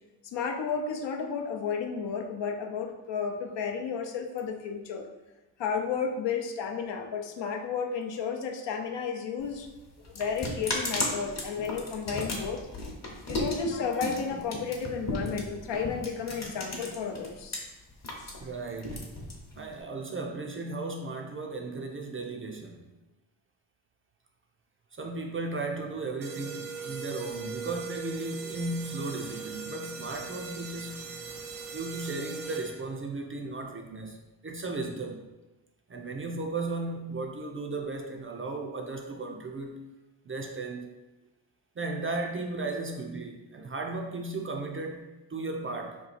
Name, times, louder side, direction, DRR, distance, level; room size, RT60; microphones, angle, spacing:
voice 1, 0.2-5.1 5.6-9.7 10.1-12.6 13.3-17.6 18.2-18.4, left 6 dB, 65° left, 4 dB, 0.6 m, -32 dB
sound 1, 9.4-17.6 17.9-19.8, left 2 dB, 35° left, 0.9 m, -34 dB
voice 2, 18.4-19.2 19.5-22.8 24.9-31.1 31.7-35.2 35.9-39.8 40.2-40.9 41.8-46.0, right 3 dB, 30° right, 2 dB, 0.4 m, -35 dB
sound 2, 26.2-33.0, right 5 dB, 85° right, 0.7 m, -40 dB
2.9 x 2.3 x 4.0 m, 1.1 s
supercardioid pair, 50°, 48 cm